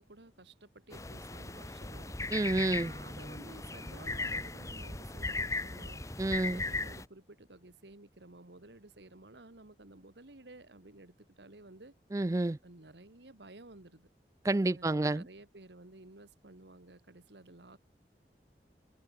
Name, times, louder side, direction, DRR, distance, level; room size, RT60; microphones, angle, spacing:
voice 1, 0.0-2.2 2.8-6.0 6.4-11.9 12.6-14.1 14.7-17.8, right 2 dB, 80° right, 1.7 m, -54 dB
sound 1, 0.9-7.0, left 3 dB, 20° left, 1.1 m, -38 dB
voice 2, 2.3-2.9 6.2-6.6 12.1-12.6 14.4-15.3, right 2 dB, 20° right, 0.4 m, -29 dB
head